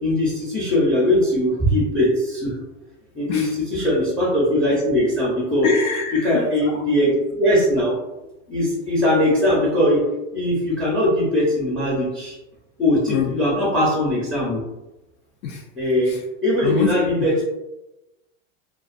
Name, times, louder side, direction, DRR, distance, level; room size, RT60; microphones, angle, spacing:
voice 1, 0.0-2.5 3.1-5.7 6.1-8.0 8.5-10.0 10.3-12.4 12.8-14.6 15.8-16.1 16.4-17.4, left 1 dB, 5° left, -5 dB, 0.5 m, -20 dB
voice 2, 5.6-6.3 13.1-13.3 15.4-15.6 16.1-16.2 16.6-16.9, left 5 dB, 85° left, 1 dB, 0.5 m, -24 dB
2.3 x 2.2 x 2.4 m, 0.97 s
supercardioid pair, 130°, 38 cm